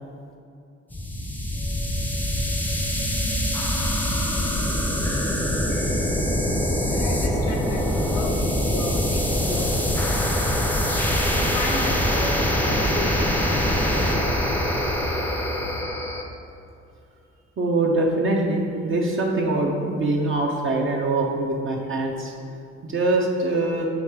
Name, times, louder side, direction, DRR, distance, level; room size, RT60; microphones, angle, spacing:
sound 1, 0.9-16.2, equal, 5° left, 0.6 m, -24 dB
voice 1, 5.9-15.9, left 2 dB, 85° left, 0 dB, 0.9 m, -35 dB
voice 2, 17.6-22.3 22.8-23.9, right 2 dB, 40° right, -1 dB, 0.8 m, -23 dB
6.4 x 3.2 x 4.7 m, 2.5 s
cardioid pair, 90°, 30 cm